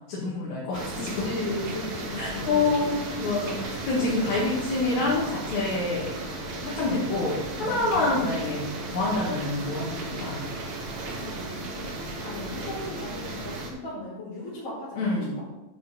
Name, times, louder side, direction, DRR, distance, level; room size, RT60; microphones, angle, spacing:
voice 1, 0.1-1.2 2.2-6.1 6.6-10.4 15.0-15.4, left 2 dB, 75° left, -6 dB, 3.1 m, -27 dB
sound 1, 0.7-13.7, right 2 dB, 75° right, 2.7 m, -35 dB
voice 2, 0.9-2.6 7.5-8.2 9.6-10.3 11.0-11.9 12.2-15.4, left 2 dB, 55° left, -9 dB, 3.1 m, -37 dB
8.2 x 6.9 x 4.2 m, 0.98 s
omnidirectional pair, 3.3 m